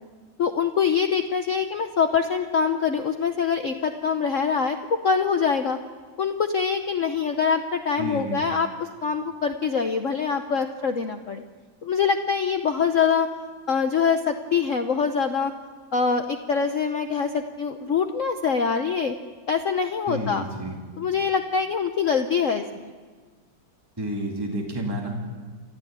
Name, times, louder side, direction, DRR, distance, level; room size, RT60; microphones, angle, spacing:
voice 1, 0.4-5.8 6.2-11.4 11.8-13.3 13.7-15.5 15.9-19.1 19.5-20.5 21.0-22.8, left 6 dB, 50° left, 6 dB, 1.0 m, -24 dB
voice 2, 8.0-8.4 20.1-20.8 24.0-25.3, right 1 dB, 10° right, -1 dB, 2.7 m, -30 dB
30.0 x 13.0 x 8.9 m, 1.5 s
omnidirectional pair, 2.1 m